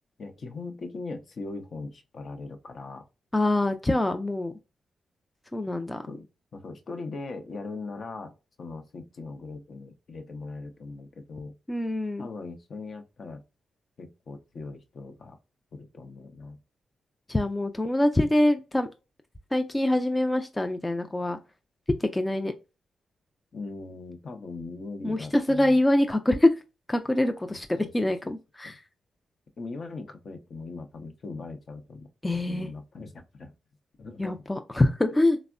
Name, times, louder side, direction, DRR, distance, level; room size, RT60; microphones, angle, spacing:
voice 1, 0.2-3.0 6.1-6.2 6.5-11.5 12.2-13.4 14.0-15.4 15.7-16.6 23.5-25.8 27.5-27.6 29.6-32.1 32.5-33.5 34.0-34.4, left 3 dB, 60° left, 0.6 m, -40 dB
voice 2, 3.3-4.5 5.5-6.0 11.7-12.3 17.3-18.9 19.5-21.4 22.0-22.5 25.0-26.5 26.9-28.8 32.2-32.7 34.2-35.4, left 1 dB, 20° left, 0.4 m, -24 dB
3.4 x 2.0 x 2.4 m
supercardioid pair, 50°, 0 cm